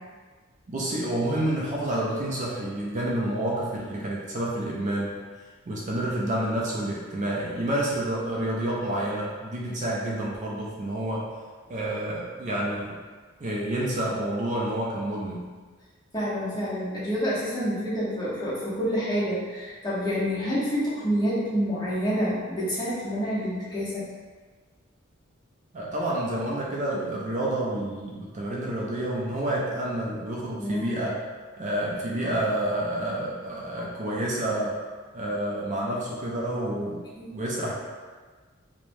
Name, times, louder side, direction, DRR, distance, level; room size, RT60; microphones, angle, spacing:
voice 1, 0.7-5.1 5.7-11.3 11.7-13.0 13.4-15.5 25.7-31.2 31.6-34.8 35.1-37.0 37.3-37.7, right 1 dB, 35° right, -4 dB, 0.4 m, -29 dB
voice 2, 16.1-24.0 30.6-30.9 37.2-37.3, equal, 20° left, -9 dB, 0.8 m, -28 dB
3.2 x 2.1 x 2.5 m, 1.4 s
head